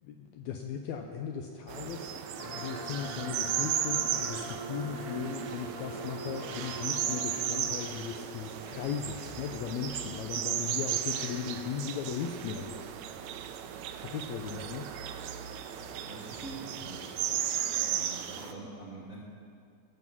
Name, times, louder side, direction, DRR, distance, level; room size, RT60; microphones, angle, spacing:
voice 1, 0.0-2.1 2.4-12.8 13.2-13.4 14.0-14.9, left 7 dB, 80° left, 3 dB, 1.7 m, -37 dB
sound 1, 1.7-18.5, right 10 dB, 80° right, 1.7 m, -35 dB
sound 2, 2.4-7.6, right 1 dB, 40° left, 1.3 m, -42 dB
voice 2, 16.1-17.2 17.7-19.2, right 2 dB, 50° right, -7 dB, 0.9 m, -45 dB
17.0 x 5.7 x 6.1 m, 2.3 s
omnidirectional pair, 3.7 m